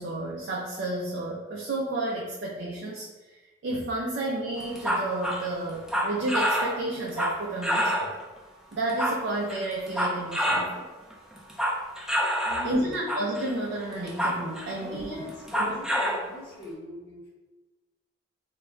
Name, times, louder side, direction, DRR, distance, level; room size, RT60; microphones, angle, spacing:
voice 1, 0.0-3.4 3.6-8.1 8.7-10.9 12.6-15.2 15.5-15.8, right 2 dB, 65° right, -2 dB, 0.4 m, -31 dB
sound 1, 4.6-8.2 8.7-10.7 11.1-12.7 13.1-13.5 13.9-14.9 15.3-16.2, equal, 5° right, 0.4 m, -27 dB
voice 2, 12.4-13.1 14.7-17.3, left 1 dB, 25° left, -12 dB, 0.9 m, -41 dB
2.2 x 2.1 x 3.6 m, 1.2 s
head